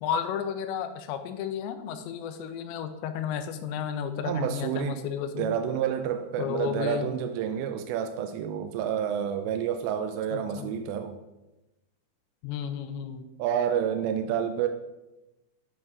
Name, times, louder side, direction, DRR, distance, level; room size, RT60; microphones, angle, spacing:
voice 1, 0.0-5.5 6.4-7.1 10.3-10.7 12.4-13.2, left 8 dB, 90° left, 9 dB, 2.9 m, -33 dB
voice 2, 4.2-5.0 5.4-11.2 13.4-14.7, right 9 dB, 85° right, 7 dB, 2.7 m, -29 dB
10.5 x 5.4 x 3.7 m, 0.99 s
omnidirectional pair, 5.0 m